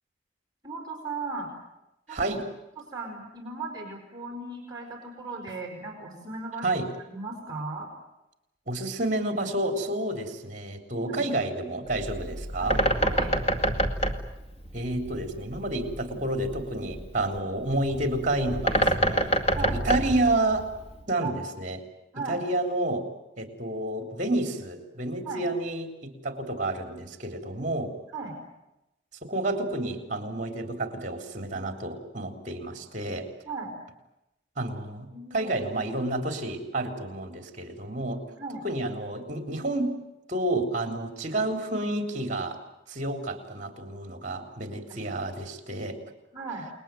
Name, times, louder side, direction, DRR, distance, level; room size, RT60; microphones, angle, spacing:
voice 1, 0.6-1.5 2.2-2.4 2.8-6.8 7.1-7.9 11.0-11.2 12.6-12.7 13.0-13.3 16.1-16.2 19.5-19.8 21.2-21.3 22.1-22.4 25.2-25.4 28.1-28.3 33.5-33.7 35.1-35.5 38.4-38.6 46.3-46.7, right 3 dB, 20° right, 0 dB, 5.0 m, -36 dB
voice 2, 2.1-2.4 6.6-6.9 8.7-12.8 14.7-19.4 19.6-20.7 21.1-21.8 22.3-23.0 23.4-27.9 29.2-33.3 34.6-35.1 35.3-38.2 38.6-39.9 40.3-42.6 42.9-46.0, right 2 dB, 40° right, 4 dB, 3.7 m, -30 dB
Bird, 11.9-21.0, right 1 dB, 35° left, 2.2 m, -28 dB
29.5 x 21.0 x 9.2 m, 0.93 s
head